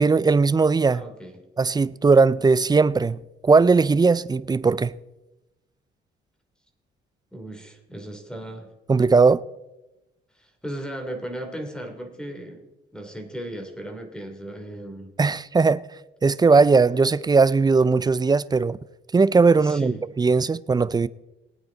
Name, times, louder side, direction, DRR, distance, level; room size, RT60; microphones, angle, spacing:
voice 1, 0.0-1.0 1.6-4.9 8.9-9.4 15.2-15.8 16.2-18.8 19.1-21.1, right 4 dB, 20° right, 0.4 m, -19 dB
voice 2, 0.9-1.4 7.3-8.7 10.3-12.7 12.9-15.1 19.6-20.0, right 1 dB, 5° left, 3.2 m, -36 dB
21.5 x 9.1 x 4.0 m
cardioid pair, 90°, 20 cm